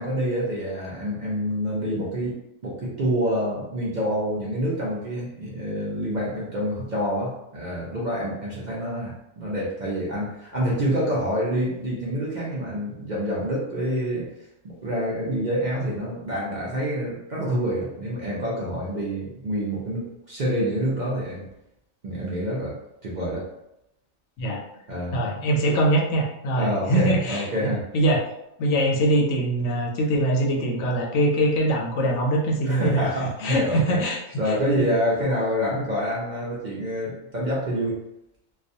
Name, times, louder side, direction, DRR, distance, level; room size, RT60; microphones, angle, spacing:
voice 1, 0.0-2.4 2.6-14.3 14.6-21.5 22.0-23.5 24.9-25.2 26.5-27.9 32.7-34.0 34.4-38.0, equal, 60° right, -6 dB, 0.5 m, -27 dB
voice 2, 25.1-28.2 28.6-33.1 33.4-34.2, right 1 dB, 70° left, 0 dB, 0.8 m, -23 dB
2.3 x 2.2 x 2.6 m, 0.83 s
omnidirectional pair, 1.5 m